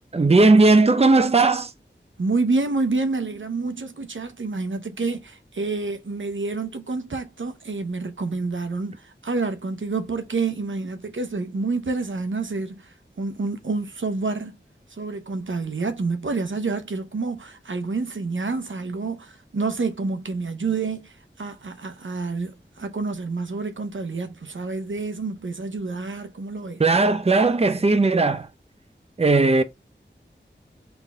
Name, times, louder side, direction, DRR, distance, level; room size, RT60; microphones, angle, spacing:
voice 1, 0.1-1.7 26.8-28.5 29.2-29.6, right 3 dB, 30° right, 0.6 m, -17 dB
voice 2, 2.2-14.6 14.9-26.8, right 3 dB, 80° right, 0.8 m, -28 dB
4.1 x 3.5 x 3.5 m
wide cardioid pair, 55°, 20 cm